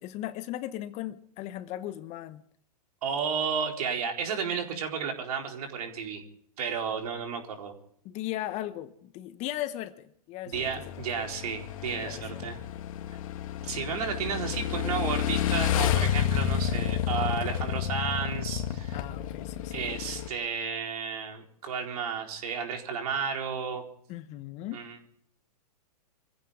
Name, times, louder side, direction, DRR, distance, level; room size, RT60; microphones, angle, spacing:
voice 1, 0.0-2.4 8.0-10.7 11.9-12.2 18.9-20.1 24.1-24.8, left 14 dB, 35° left, 12 dB, 1.0 m, -37 dB
voice 2, 3.0-6.2 6.6-7.7 10.5-12.6 13.6-19.0 19.7-23.8 24.7-25.0, right 6 dB, 65° right, 2 dB, 4.3 m, -32 dB
Motorcycle / Engine, 10.5-20.3, left 10 dB, 55° left, 2.1 m, -30 dB
25.5 x 15.5 x 3.7 m, 0.63 s
hypercardioid pair, 120°, 21 cm